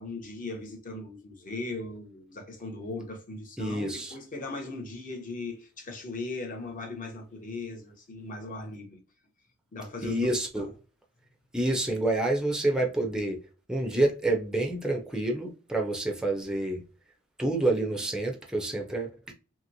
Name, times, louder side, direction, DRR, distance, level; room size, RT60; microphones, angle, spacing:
voice 1, 0.0-9.0 9.7-10.3 10.6-10.7, left 2 dB, 40° left, 0.8 m, -38 dB
voice 2, 3.6-4.1 10.0-10.7 11.5-13.4 13.7-16.8 17.4-19.1, right 2 dB, 5° right, 0.5 m, -28 dB
2.9 x 2.9 x 2.6 m
head